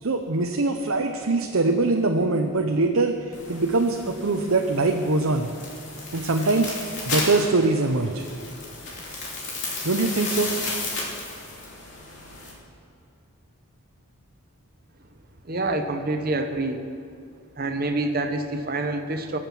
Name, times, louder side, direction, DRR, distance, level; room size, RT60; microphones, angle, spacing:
voice 1, 0.0-5.5 6.1-6.8 7.1-8.2 9.8-10.5, right 3 dB, 70° right, 3 dB, 0.8 m, -23 dB
sound 1, 3.3-12.5, left 3 dB, 55° left, 3.2 m, -34 dB
voice 2, 15.4-16.8 17.6-19.4, right 2 dB, 45° right, 6 dB, 1.0 m, -27 dB
23.0 x 7.7 x 6.1 m, 2.2 s
head